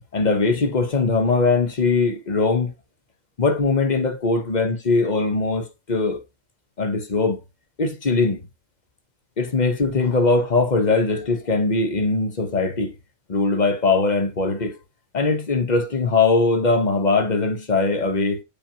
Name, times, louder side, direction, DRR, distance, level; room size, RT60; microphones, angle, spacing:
voice 1, 0.1-2.7 3.4-6.2 6.8-7.4 7.8-8.4 9.4-12.9 13.3-14.7 15.1-18.4, left 3 dB, 35° left, 1.1 m, -21 dB
8.5 x 4.3 x 2.9 m
omnidirectional pair, 1.4 m